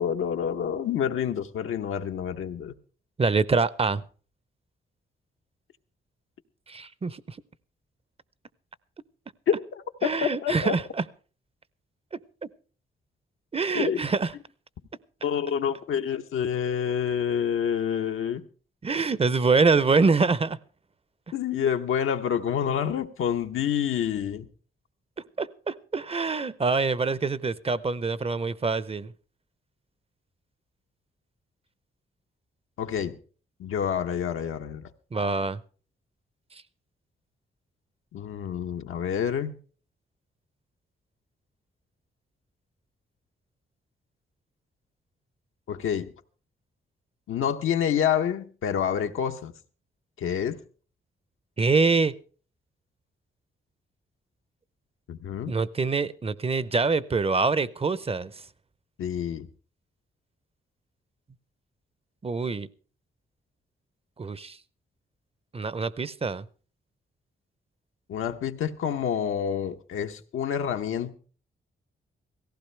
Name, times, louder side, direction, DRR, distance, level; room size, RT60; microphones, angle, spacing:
voice 1, 0.0-2.7 9.5-9.6 10.2-10.7 13.7-14.0 15.2-18.4 21.3-24.5 32.8-33.2 33.6-34.9 38.1-39.5 45.7-46.1 47.3-49.5 50.2-50.6 55.1-55.5 59.0-59.5 68.1-71.1, left 8 dB, 85° left, 0.9 m, -28 dB
voice 2, 3.2-4.0 6.7-7.4 10.0-11.0 12.1-12.2 13.5-14.3 18.8-20.6 25.4-29.1 35.1-35.6 51.6-52.1 55.5-58.3 62.2-62.7 64.2-64.6 65.5-66.5, right 4 dB, 30° right, 0.6 m, -25 dB
17.0 x 15.5 x 3.3 m
cardioid pair, 75°, 21 cm